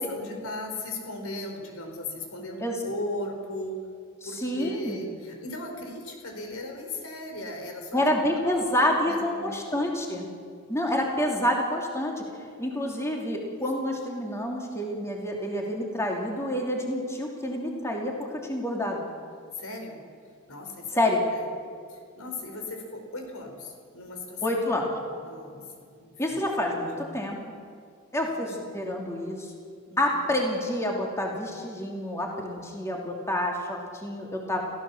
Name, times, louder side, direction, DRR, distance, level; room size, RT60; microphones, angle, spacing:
voice 1, 0.1-3.7 4.2-8.1 8.4-10.2 13.8-13.9 14.9-15.2 19.5-20.0 20.5-21.4 21.9-24.6 25.2-25.6 26.0-26.4 28.2-28.5 29.8-30.2, left 2 dB, 75° left, 3 dB, 4.5 m, -37 dB
voice 2, 4.2-5.1 7.9-10.3 10.7-12.1 12.6-18.2 18.4-19.0 20.9-21.2 24.4-24.9 26.2-27.4 28.1-29.5 30.0-34.6, left 1 dB, 15° left, 0 dB, 2.7 m, -28 dB
29.5 x 15.5 x 7.2 m, 2.2 s
head